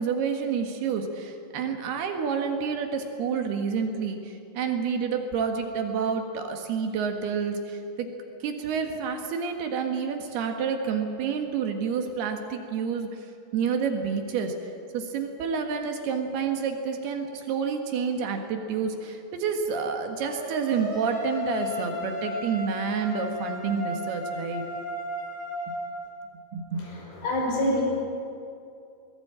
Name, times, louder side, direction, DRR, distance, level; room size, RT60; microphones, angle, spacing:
voice 1, 0.0-8.1 8.4-13.3 13.5-14.6 14.9-24.6 26.5-26.9, right 6 dB, 70° right, 4 dB, 3.5 m, -29 dB
sound 1, 20.2-26.0, left 1 dB, 40° left, 5.9 m, -34 dB
voice 2, 27.2-27.8, left 1 dB, 75° left, -2 dB, 7.7 m, -24 dB
21.0 x 19.5 x 8.8 m, 2.5 s
omnidirectional pair, 4.9 m